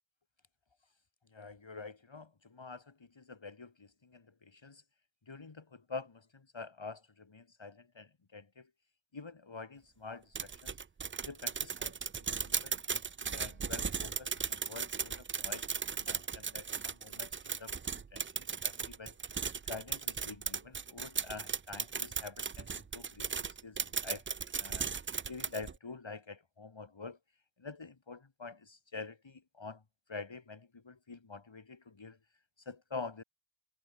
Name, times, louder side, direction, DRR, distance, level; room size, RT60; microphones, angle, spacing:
voice 1, 1.3-4.8 5.3-8.7 9.1-10.8 11.2-11.9 12.6-12.8 13.2-15.7 16.0-19.1 19.7-23.3 23.6-23.8 24.0-24.2 24.6-24.9 25.3-27.2 27.6-29.8 30.1-32.2 32.7-33.2, left 4 dB, 65° left, 2.9 m, -47 dB
sound 1, 10.3-25.8, right 6 dB, 30° right, 0.3 m, -37 dB
wide cardioid pair, 55°, 49 cm